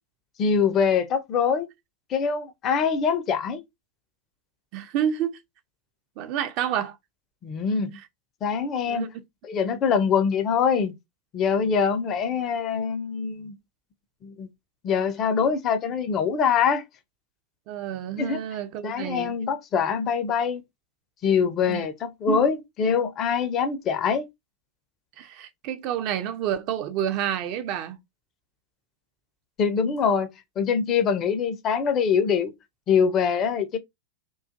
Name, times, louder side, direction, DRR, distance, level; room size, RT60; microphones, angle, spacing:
voice 1, 0.4-1.7 2.1-3.6 7.4-7.9 8.4-9.1 9.5-10.9 11.3-13.5 14.2-14.5 14.8-16.8 18.2-18.4 18.8-20.6 21.2-24.3 29.6-30.3 30.6-32.5 32.9-33.8, left 6 dB, 30° left, 0.4 m, -24 dB
voice 2, 4.7-5.4 6.2-7.0 7.9-8.1 8.9-9.1 17.7-19.3 21.7-21.9 22.3-22.4 25.2-28.0, right 10 dB, 40° right, 0.4 m, -29 dB
2.4 x 2.3 x 2.5 m
figure-of-eight pair, 90°, 0 cm